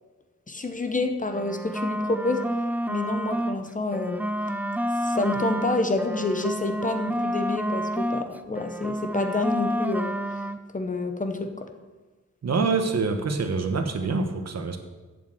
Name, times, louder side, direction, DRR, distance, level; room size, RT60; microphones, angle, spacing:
voice 1, 0.5-2.5 2.9-4.3 5.0-10.1 10.7-11.7, left 2 dB, 25° left, 7 dB, 0.8 m, -28 dB
sound 1, 1.3-3.6 3.9-8.3 8.5-10.6, equal, 5° right, 0.4 m, -29 dB
voice 2, 12.4-14.8, right 4 dB, 55° right, 7 dB, 1.1 m, -25 dB
8.4 x 7.3 x 7.7 m, 1.3 s
wide cardioid pair, 145°, 30 cm